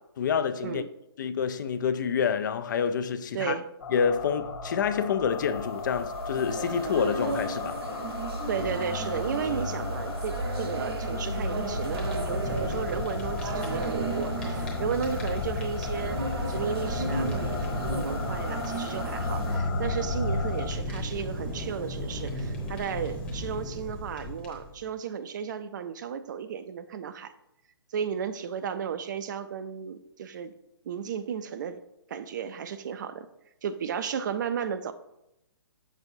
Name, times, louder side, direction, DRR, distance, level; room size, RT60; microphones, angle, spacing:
voice 1, 0.2-0.8 1.2-3.5 3.9-7.8, left 7 dB, 45° left, 0.4 m, -28 dB
voice 2, 3.3-3.7 8.5-27.3 27.9-30.6 30.8-31.8 32.1-33.3 33.6-34.9, right 7 dB, 45° right, 0.4 m, -34 dB
sound 1, 3.8-20.7, left 3 dB, 70° left, 1.2 m, -34 dB
sound 2, 5.6-19.6, right 3 dB, 65° right, 1.0 m, -35 dB
Fire, 11.4-24.9, left 1 dB, 10° left, 0.9 m, -35 dB
6.4 x 6.1 x 2.7 m
hypercardioid pair, 160°, 14 cm